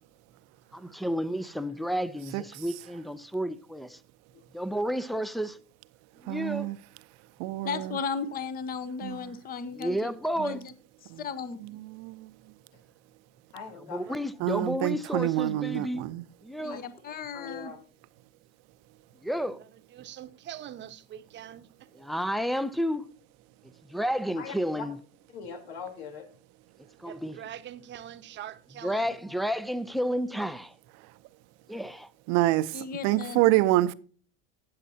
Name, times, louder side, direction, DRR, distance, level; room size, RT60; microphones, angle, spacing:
voice 1, 0.7-4.0 4.5-5.5 6.2-6.7 9.7-10.6 13.9-16.0 16.4-16.8 19.2-19.6 22.0-23.1 23.9-25.0 27.0-27.4 28.8-30.7 31.7-32.1, equal, ahead, 0.5 m, -31 dB
voice 2, 6.3-6.8 7.4-8.0 9.0-9.2 10.4-10.5 11.1-11.2 11.6-12.3 14.4-16.2 32.3-33.9, right 16 dB, 60° right, 0.7 m, -27 dB
voice 3, 7.6-10.1 10.4-10.7 11.0-11.6 16.6-17.7 32.7-33.4, left 5 dB, 30° left, 0.9 m, -35 dB
voice 4, 13.5-14.2 16.7-16.8 17.3-17.8 24.4-24.8 25.3-26.3, left 6 dB, 85° left, 3.7 m, -41 dB
voice 5, 19.4-21.7 27.0-29.2, right 11 dB, 35° right, 1.0 m, -44 dB
18.5 x 7.7 x 2.8 m
supercardioid pair, 125°, 30 cm